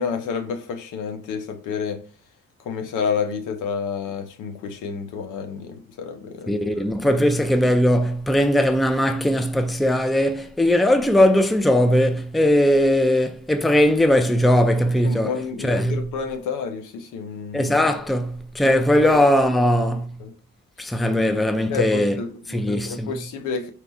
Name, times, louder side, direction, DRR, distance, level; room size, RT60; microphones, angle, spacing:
voice 1, 0.0-2.0 2.7-6.6 7.1-7.3 15.0-17.7 18.6-19.1 19.9-20.0 20.2-20.3 21.1-21.2 21.7-23.7, left 6 dB, 90° left, 0.8 m, -30 dB
voice 2, 6.5-15.3 15.6-16.0 17.5-20.1 20.8-22.2 22.5-23.1, left 1 dB, ahead, 0.4 m, -19 dB
4.3 x 2.3 x 4.0 m
cardioid pair, 90°, 30 cm